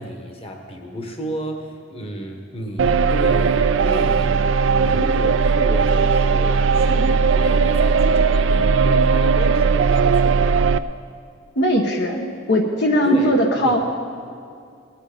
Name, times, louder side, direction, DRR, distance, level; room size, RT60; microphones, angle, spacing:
voice 1, 0.0-10.6 13.0-13.8, equal, 30° left, 3 dB, 1.4 m, -32 dB
sound 1, 2.8-10.8, right 5 dB, 75° right, 0.4 m, -17 dB
voice 2, 11.6-13.8, equal, 60° left, 2 dB, 1.1 m, -19 dB
19.0 x 10.5 x 5.1 m, 2.4 s
head